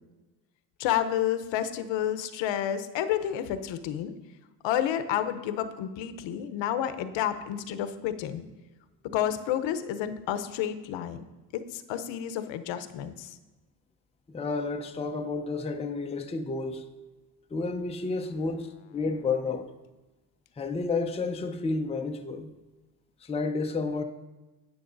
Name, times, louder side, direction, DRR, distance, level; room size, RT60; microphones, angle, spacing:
voice 1, 0.8-4.1 4.6-8.5 9.1-11.2 11.5-13.4, left 10 dB, 65° left, 0.8 m, -30 dB
voice 2, 14.3-16.8 17.5-19.7 20.6-22.5 23.2-24.0, left 3 dB, 15° left, 0.6 m, -31 dB
11.0 x 9.4 x 2.6 m
supercardioid pair, 95°, 48 cm